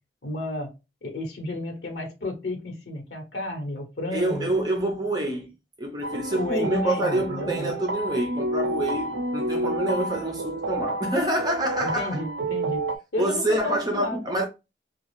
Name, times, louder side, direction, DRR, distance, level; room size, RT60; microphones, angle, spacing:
voice 1, 0.2-0.7 1.0-4.5 6.3-7.7 11.8-14.2, left 2 dB, 85° left, 1.1 m, -32 dB
voice 2, 4.1-5.5 5.8-12.2 13.2-14.5, right 1 dB, 25° right, 0.7 m, -27 dB
sound 1, 6.0-13.0, right 2 dB, 85° right, 0.5 m, -30 dB
3.1 x 2.3 x 3.1 m
head